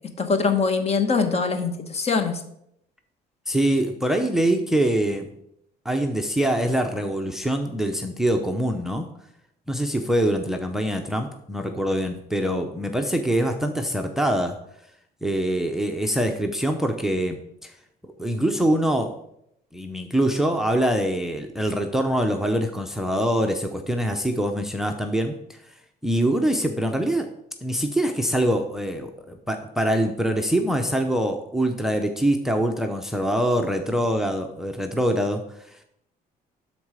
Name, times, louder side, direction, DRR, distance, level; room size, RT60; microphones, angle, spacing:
voice 1, 0.2-2.4, left 4 dB, 40° left, 7 dB, 1.1 m, -23 dB
voice 2, 3.5-5.3 5.8-9.1 9.7-14.6 15.2-17.7 18.2-19.1 19.7-25.4 26.0-27.3 27.6-35.4, right 1 dB, ahead, 5 dB, 0.7 m, -24 dB
12.0 x 4.0 x 4.9 m, 0.75 s
cardioid pair, 110°, 17 cm